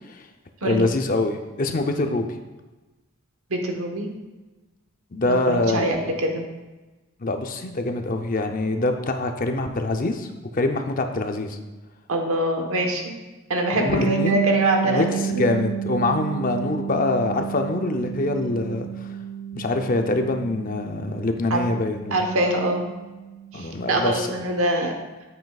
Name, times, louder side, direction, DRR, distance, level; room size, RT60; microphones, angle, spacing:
voice 1, 0.7-2.3 5.1-6.0 7.2-10.3 10.5-11.6 13.7-14.4 14.9-15.1 15.4-18.9 19.5-22.2 23.5-24.3, left 2 dB, 40° left, 5 dB, 0.6 m, -24 dB
voice 2, 3.5-4.1 5.2-6.4 12.1-13.1 13.5-15.4 21.5-21.7 22.1-22.8 23.5-24.9, right 1 dB, 80° right, 3 dB, 1.2 m, -24 dB
Bass guitar, 13.9-23.5, right 6 dB, 85° left, 2.3 m, -31 dB
9.3 x 7.7 x 2.4 m, 1.2 s
head